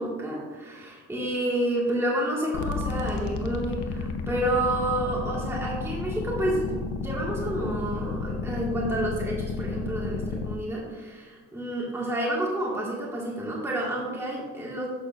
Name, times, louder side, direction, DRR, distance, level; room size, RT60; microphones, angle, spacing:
voice 1, 0.0-14.9, right 1 dB, 10° right, -5 dB, 1.8 m, -29 dB
sound 1, 2.5-10.6, left 4 dB, 70° left, 0.8 m, -32 dB
11.0 x 6.2 x 2.5 m, 1.4 s
cardioid pair, 90°, 30 cm